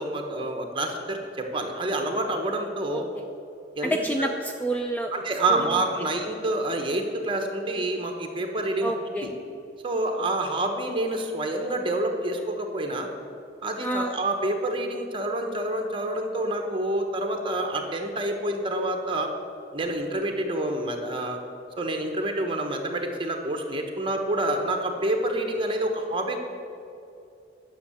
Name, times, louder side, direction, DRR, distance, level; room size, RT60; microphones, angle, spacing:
voice 1, 0.0-3.1 3.8-4.3 5.1-8.9 9.2-9.3 9.8-13.1 13.6-19.3 19.7-21.4 21.8-26.4, right 1 dB, 30° right, 4 dB, 1.2 m, -28 dB
voice 2, 2.9-3.2 3.8-5.1 5.5-5.8 8.8-9.3 13.8-14.2, right 1 dB, 10° left, 3 dB, 0.5 m, -28 dB
10.5 x 6.6 x 7.0 m, 2.7 s
head